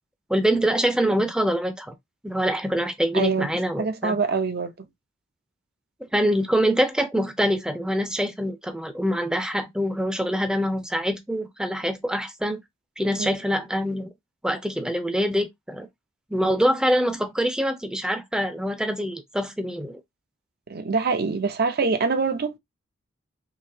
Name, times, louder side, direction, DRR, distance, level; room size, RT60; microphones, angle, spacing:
voice 1, 0.3-1.9 2.2-4.2 6.1-12.6 13.0-14.1 14.4-15.9 16.3-20.0, equal, 5° right, 0.6 m, -24 dB
voice 2, 3.1-3.5 3.8-4.9 13.2-13.3 20.7-22.6, right 4 dB, 50° right, 0.6 m, -24 dB
3.9 x 2.8 x 2.7 m
head